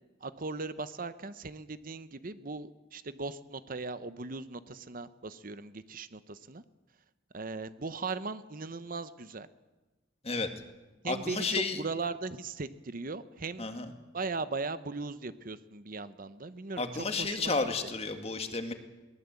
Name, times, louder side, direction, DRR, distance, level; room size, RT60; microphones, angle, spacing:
voice 1, 0.2-6.6 7.3-9.5 11.0-13.7 14.1-17.5, right 3 dB, 45° right, 13 dB, 0.8 m, -38 dB
voice 2, 11.0-11.8 13.6-13.9 16.8-18.7, left 3 dB, 35° left, 6 dB, 2.0 m, -32 dB
22.0 x 18.0 x 8.3 m, 1.2 s
head